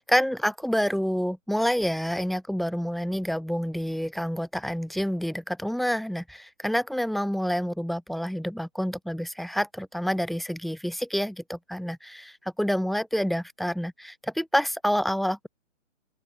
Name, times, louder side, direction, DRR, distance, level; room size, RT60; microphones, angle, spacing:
voice 1, 0.0-15.5, equal, ahead, 5.3 m, -28 dB
open air
hypercardioid pair, 140°, 37 cm